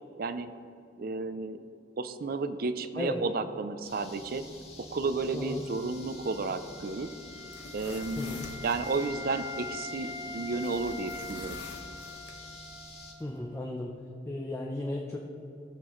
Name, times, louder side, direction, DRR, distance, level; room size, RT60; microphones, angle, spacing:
voice 1, 0.2-0.5 1.0-1.6 2.0-4.4 4.8-7.1 7.7-8.4 8.6-11.6, right 3 dB, 55° right, 11 dB, 0.5 m, -32 dB
sound 1, 3.8-13.1, left 2 dB, 40° left, 1.6 m, -48 dB
voice 2, 5.3-5.6 8.2-8.5 13.2-13.9 14.2-15.2, left 1 dB, 15° left, -1 dB, 0.6 m, -35 dB
Wind instrument woodwind instrument, 5.6-13.4, left 3 dB, 15° right, 0.8 m, -44 dB
sound 2, 7.4-9.1 10.6-12.4, left 3 dB, 90° left, 1.3 m, -47 dB
15.5 x 6.7 x 3.1 m, 2.7 s
head